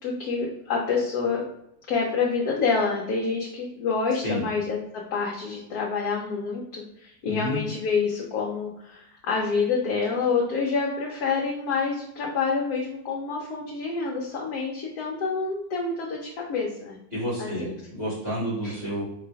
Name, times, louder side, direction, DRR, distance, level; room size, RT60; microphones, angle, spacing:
voice 1, 0.0-1.4 1.9-4.8 5.1-17.0 17.4-17.8 18.6-18.8, left 5 dB, 75° left, -2 dB, 1.2 m, -27 dB
voice 2, 7.2-7.6 17.1-17.6 17.9-19.0, equal, 40° right, -10 dB, 2.0 m, -29 dB
3.9 x 2.9 x 4.7 m, 0.79 s
omnidirectional pair, 1.7 m